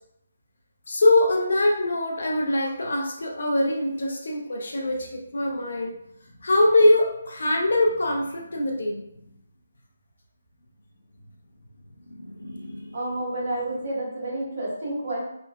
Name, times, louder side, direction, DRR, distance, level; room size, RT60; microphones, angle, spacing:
voice 1, 0.9-5.9 6.4-9.0 12.1-12.9, left 1 dB, 65° left, 1 dB, 0.5 m, -23 dB
voice 2, 12.9-15.2, right 1 dB, 45° right, -8 dB, 1.4 m, -29 dB
3.0 x 2.1 x 2.3 m, 0.77 s
hypercardioid pair, 175°, 0 cm